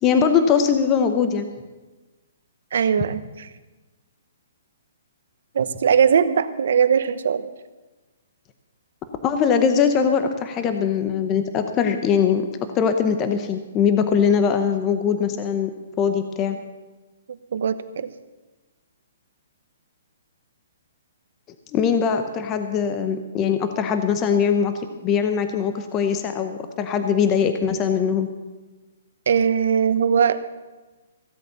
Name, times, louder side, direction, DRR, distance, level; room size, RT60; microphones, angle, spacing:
voice 1, 0.0-1.5 9.2-12.4 12.7-15.7 16.0-16.6 21.7-28.3, left 7 dB, 20° left, 8 dB, 0.7 m, -21 dB
voice 2, 2.7-3.5 5.5-7.5 17.3-18.1 29.3-30.4, right 7 dB, 65° right, 12 dB, 0.9 m, -20 dB
15.5 x 8.3 x 6.8 m, 1.2 s
hypercardioid pair, 165°, 0 cm